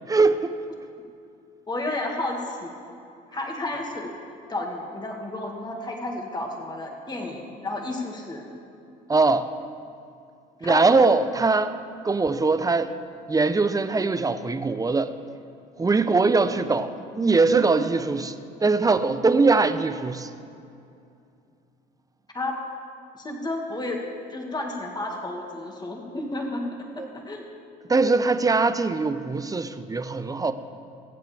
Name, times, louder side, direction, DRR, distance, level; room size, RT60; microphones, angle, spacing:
voice 1, 0.1-0.6 9.1-9.5 10.6-11.7 12.0-12.9 13.3-15.1 15.8-20.3 27.0-27.1 27.9-30.5, right 3 dB, 20° right, 11 dB, 0.8 m, -21 dB
voice 2, 1.7-2.7 3.3-4.1 4.5-8.4 10.6-10.8 22.3-22.5 23.1-24.0 24.3-26.6 27.0-27.4, left 2 dB, 20° left, 0 dB, 2.2 m, -31 dB
23.0 x 7.9 x 3.5 m, 2.5 s
supercardioid pair, 70°, 19 cm